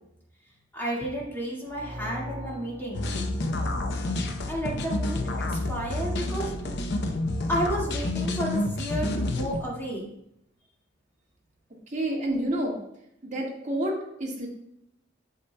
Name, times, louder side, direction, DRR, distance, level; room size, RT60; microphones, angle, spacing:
voice 1, 0.7-3.0 4.5-6.5 7.5-10.1, right 1 dB, 10° left, -4 dB, 1.8 m, -32 dB
string section, 1.7-4.5, equal, 15° right, 1.6 m, -41 dB
sound 1, 2.9-9.6, left 2 dB, 65° left, 0.7 m, -29 dB
voice 2, 11.9-12.8 13.2-13.9 14.2-14.5, right 1 dB, 40° right, -2 dB, 1.7 m, -28 dB
8.1 x 6.7 x 2.2 m, 0.77 s
head